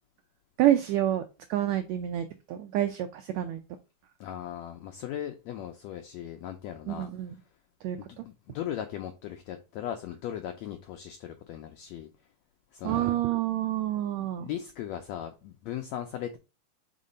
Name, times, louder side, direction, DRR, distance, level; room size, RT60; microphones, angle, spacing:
voice 1, 0.6-1.2 1.5-3.6 6.9-7.3 7.8-8.2 12.8-14.5, right 12 dB, 85° right, 7 dB, 1.5 m, -28 dB
voice 2, 4.2-7.1 8.0-12.1 12.7-13.2 14.2-16.4, left 10 dB, 85° left, 6 dB, 1.5 m, -38 dB
5.0 x 3.8 x 5.2 m, 0.30 s
omnidirectional pair, 3.8 m